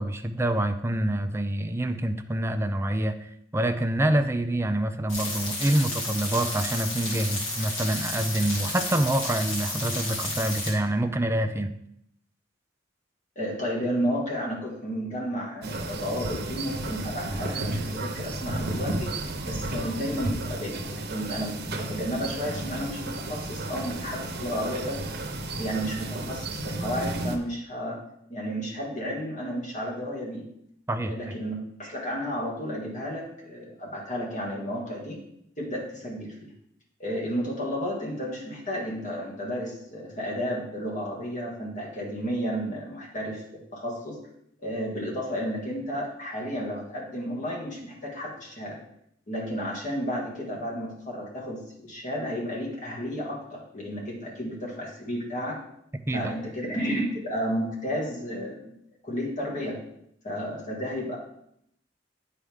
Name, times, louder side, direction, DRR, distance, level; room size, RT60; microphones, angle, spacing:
voice 1, 0.0-11.7 30.9-31.3 56.1-56.3, right 1 dB, 15° right, 7 dB, 0.4 m, -26 dB
sound 1, 5.1-10.7, left 2 dB, 75° left, 2.3 m, -32 dB
voice 2, 13.4-19.1 19.5-25.2 25.6-28.0 28.3-30.5 31.0-35.2 35.6-36.5 37.0-44.2 44.6-48.8 49.3-55.6 56.1-58.7 59.0-59.8 60.2-61.2, equal, 40° left, -3 dB, 1.9 m, -32 dB
sound 2, 15.6-27.4, right 2 dB, 55° right, 0.9 m, -33 dB
9.8 x 4.5 x 3.6 m, 0.75 s
head